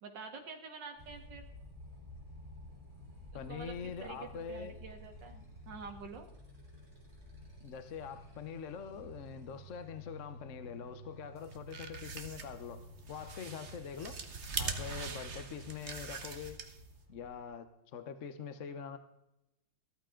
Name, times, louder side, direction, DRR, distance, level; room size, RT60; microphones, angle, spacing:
voice 1, 0.0-1.5 3.5-6.3, right 5 dB, 60° right, 5 dB, 2.3 m, -47 dB
Motorcycle, 1.0-17.4, left 1 dB, 15° right, 4.2 m, -53 dB
voice 2, 3.3-4.8 7.6-12.8 13.1-14.2 14.6-16.6 17.1-19.0, left 7 dB, 55° left, 10 dB, 0.9 m, -44 dB
sound 1, 11.4-17.0, right 4 dB, 40° right, 1.3 m, -42 dB
14.5 x 13.5 x 3.7 m, 0.88 s
omnidirectional pair, 2.2 m